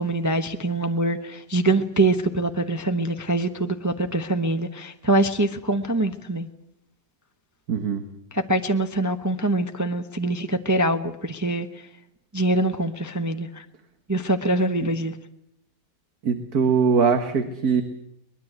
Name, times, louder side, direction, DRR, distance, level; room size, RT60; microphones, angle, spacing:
voice 1, 0.0-6.5 8.3-11.7 12.3-13.6 14.1-15.1, right 2 dB, 15° right, 6 dB, 0.7 m, -24 dB
voice 2, 7.7-8.0 16.3-17.8, right 6 dB, 55° right, 8 dB, 1.9 m, -21 dB
23.0 x 21.0 x 8.0 m, 0.77 s
omnidirectional pair, 2.0 m